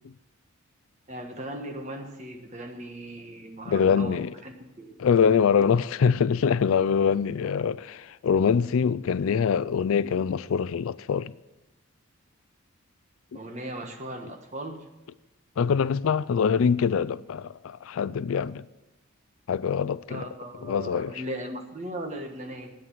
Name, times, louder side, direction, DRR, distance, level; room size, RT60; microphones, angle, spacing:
voice 1, 1.1-4.9 13.3-14.8 20.1-22.7, right 1 dB, 30° right, 1.5 m, -38 dB
voice 2, 3.7-4.3 5.0-11.3 13.3-13.4 15.6-18.6 19.5-20.3 20.6-21.1, left 6 dB, 65° left, 0.4 m, -24 dB
11.5 x 9.4 x 7.5 m
head